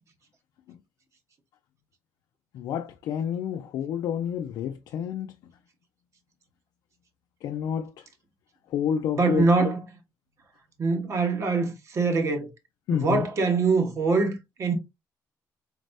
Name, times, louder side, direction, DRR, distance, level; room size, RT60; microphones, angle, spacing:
voice 1, 2.5-5.3 7.4-7.9 8.7-9.7 12.9-13.3, left 8 dB, 80° left, 0.4 m, -29 dB
voice 2, 9.2-9.9 10.8-12.5 12.9-14.7, right 4 dB, 50° right, 1.2 m, -24 dB
4.0 x 3.3 x 2.6 m
cardioid pair, 110°, 7 cm